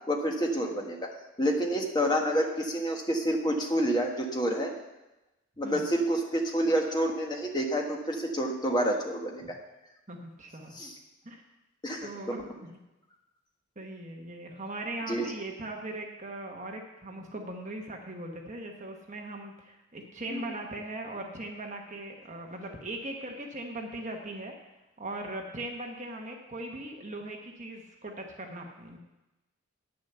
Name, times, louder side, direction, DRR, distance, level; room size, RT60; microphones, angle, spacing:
voice 1, 0.1-1.0 1.4-4.7 5.6-9.4 10.8-10.9 11.8-12.1 15.1-15.3 20.3-20.4, equal, 20° left, 1 dB, 1.3 m, -28 dB
voice 2, 10.1-10.8 11.2-11.4 12.0-12.7 13.8-24.5 25.0-29.0, right 1 dB, 35° right, 2 dB, 1.1 m, -39 dB
9.5 x 6.8 x 6.8 m, 1.0 s
head